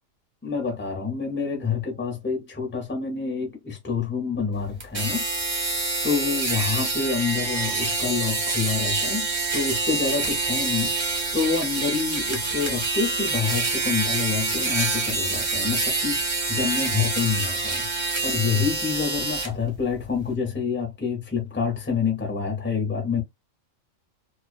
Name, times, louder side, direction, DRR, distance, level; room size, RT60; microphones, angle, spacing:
voice 1, 0.4-5.2 6.0-9.3 9.5-10.9 11.3-16.2 16.5-17.9 18.2-23.2, left 5 dB, 10° left, 0.7 m, -27 dB
sound 1, 4.8-19.5, right 3 dB, 30° right, 0.5 m, -26 dB
2.4 x 2.2 x 2.4 m
omnidirectional pair, 1.4 m